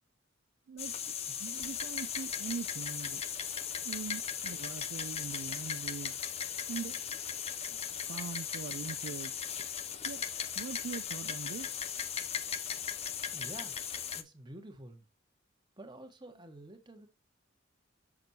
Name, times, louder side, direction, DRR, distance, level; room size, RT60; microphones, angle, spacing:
voice 1, 0.7-3.2 3.8-6.2 6.7-7.0 7.7-7.8 8.1-9.3 10.0-10.2 10.5-11.7, right 6 dB, 70° right, 0.3 m, -42 dB
sound 1, 0.8-14.2, left 8 dB, 30° left, 0.5 m, -37 dB
voice 2, 13.3-13.8 14.1-15.1 15.8-17.1, right 1 dB, 20° right, 1.2 m, -49 dB
6.7 x 6.1 x 2.7 m
head